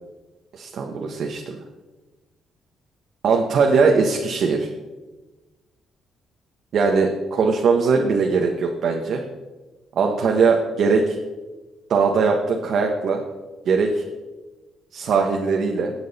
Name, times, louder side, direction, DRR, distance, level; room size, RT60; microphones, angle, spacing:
voice 1, 0.5-1.6 3.2-4.7 6.7-9.2 10.0-11.2 11.9-13.2 13.6-14.0 14.9-15.9, right 4 dB, 65° right, 2 dB, 1.2 m, -20 dB
18.5 x 6.4 x 4.2 m, 1.2 s
cardioid pair, 90°, 0 cm